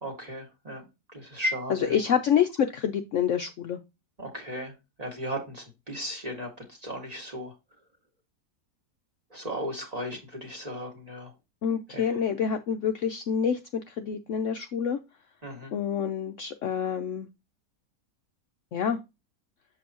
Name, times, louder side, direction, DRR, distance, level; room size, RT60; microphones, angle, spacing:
voice 1, 0.0-0.8 1.1-2.0 4.2-4.7 5.0-6.5 6.8-7.5 9.3-11.3 11.9-12.1 15.4-15.7, equal, 25° right, 0 dB, 2.0 m, -35 dB
voice 2, 1.9-3.8 11.6-15.0 15.7-17.3 18.7-19.0, left 8 dB, 65° left, 6 dB, 0.8 m, -27 dB
7.4 x 5.3 x 2.9 m, 0.24 s
omnidirectional pair, 1.7 m